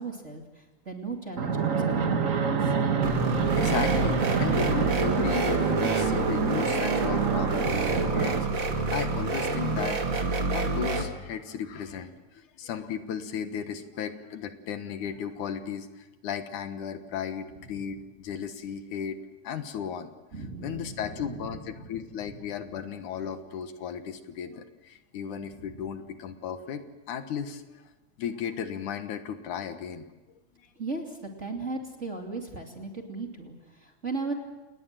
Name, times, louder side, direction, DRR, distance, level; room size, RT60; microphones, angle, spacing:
voice 1, 0.0-2.7 20.3-22.5 25.5-25.7 30.8-34.3, right 3 dB, 25° right, 2 dB, 2.5 m, -37 dB
Fixed-wing aircraft airplane, 1.4-8.4, right 5 dB, 80° right, 0.7 m, -27 dB
sound 1, 3.0-11.0, right 3 dB, 40° right, 3.0 m, -28 dB
voice 2, 3.6-10.0 10.5-19.2 19.4-20.1 20.6-27.6 28.2-30.0 30.6-30.7, left 8 dB, 75° left, 8 dB, 2.8 m, -35 dB
29.5 x 19.5 x 7.5 m, 1.1 s
omnidirectional pair, 3.6 m